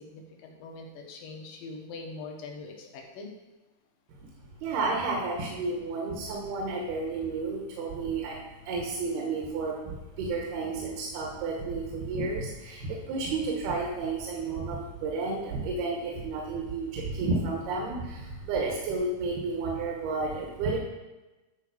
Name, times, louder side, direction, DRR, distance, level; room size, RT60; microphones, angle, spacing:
voice 1, 0.0-3.3, left 3 dB, 65° left, 0 dB, 2.8 m, -42 dB
voice 2, 4.6-20.8, right 3 dB, 80° right, -1 dB, 3.2 m, -31 dB
11.0 x 4.3 x 6.7 m, 1.1 s
omnidirectional pair, 4.4 m